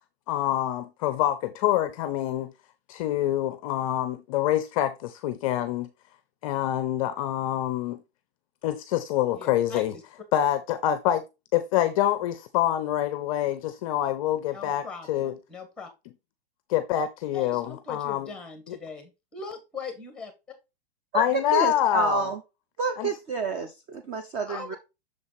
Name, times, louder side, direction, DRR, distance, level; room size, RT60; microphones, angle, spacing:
voice 1, 0.3-2.5 2.9-5.9 6.4-8.0 8.6-9.9 10.3-11.2 11.5-15.3 16.7-18.3 18.7-18.8 21.1-22.3 23.0-23.1, left 12 dB, 35° left, 0.5 m, -26 dB
voice 2, 9.3-10.0 14.5-15.9 16.9-17.1 17.3-20.3 24.5-24.8, left 4 dB, 5° left, 1.5 m, -40 dB
voice 3, 21.1-22.4 22.8-24.8, right 4 dB, 20° right, 0.5 m, -29 dB
6.5 x 4.1 x 4.0 m
hypercardioid pair, 150°, 31 cm